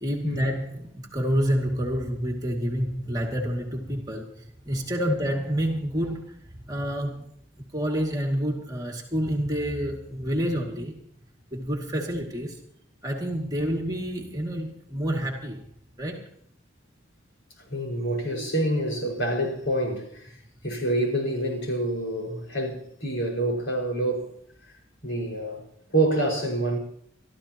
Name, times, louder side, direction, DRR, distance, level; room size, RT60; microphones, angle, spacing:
voice 1, 0.0-4.3 4.7-7.3 7.7-11.0 11.5-12.6 13.0-15.6 16.0-16.2, equal, 20° right, 2.3 m, -28 dB
voice 2, 17.6-20.3 20.6-24.3 25.0-25.6 25.9-26.8, right 1 dB, 70° left, 5.3 m, -27 dB
24.0 x 13.5 x 3.0 m
head